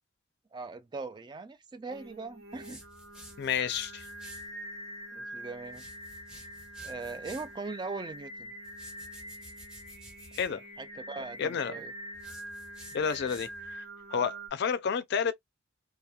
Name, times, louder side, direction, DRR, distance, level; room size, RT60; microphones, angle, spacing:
voice 1, 0.5-2.8 5.1-5.9 6.8-8.5 10.8-11.9, right 3 dB, 20° right, 0.3 m, -40 dB
Singing, 1.9-14.5, right 1 dB, 85° right, 1.1 m, -45 dB
sound 1, 2.5-4.5 5.6-7.6 8.6-10.5 12.1-13.7, equal, 5° right, 0.8 m, -52 dB
voice 2, 3.4-4.1 10.4-10.6 11.4-11.8 12.9-13.8 14.1-15.3, left 6 dB, 60° left, 0.4 m, -30 dB
2.9 x 2.1 x 2.3 m
head